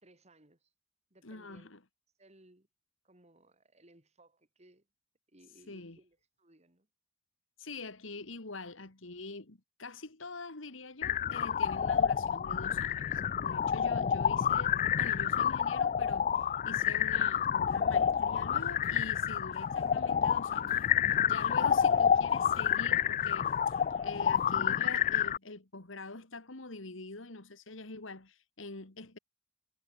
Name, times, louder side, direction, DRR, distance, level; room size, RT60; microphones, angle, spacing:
voice 1, 0.0-0.7 1.1-1.7 2.2-2.7 3.0-4.9 5.3-6.9, right 1 dB, 35° right, 3.2 m, -62 dB
voice 2, 1.2-1.8 5.7-6.0 7.6-20.7 21.1-23.8 24.0-29.2, left 3 dB, 75° left, 2.3 m, -45 dB
sound 1, 11.0-25.4, left 8 dB, 40° left, 0.3 m, -29 dB
sound 2, 17.2-24.6, right 3 dB, 90° right, 5.6 m, -60 dB
head